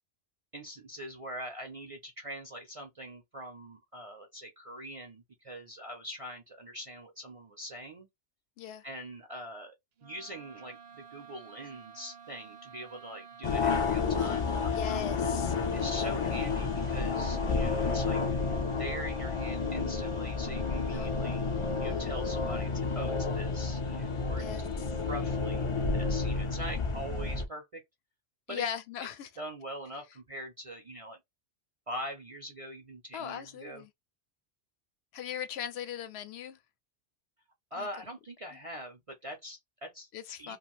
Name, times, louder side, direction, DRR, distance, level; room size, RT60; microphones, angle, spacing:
voice 1, 0.5-8.1 8.8-9.7 10.0-15.2 15.7-18.2 18.7-21.4 21.8-24.6 24.9-25.6 25.9-27.8 28.5-28.6 29.4-31.2 31.9-33.8 37.7-40.1 40.4-40.6, equal, 40° right, 0.5 m, -43 dB
sound 1, 10.0-22.7, right 7 dB, 65° right, 0.8 m, -52 dB
sound 2, 13.4-27.4, left 4 dB, 45° left, 0.4 m, -31 dB
voice 2, 14.7-15.6 16.0-16.4 20.8-21.1 24.4-24.9 28.5-29.3 33.1-33.9 35.1-36.6 37.8-37.9 40.1-40.6, left 9 dB, 70° left, 0.8 m, -39 dB
2.5 x 2.3 x 2.9 m
omnidirectional pair, 1.2 m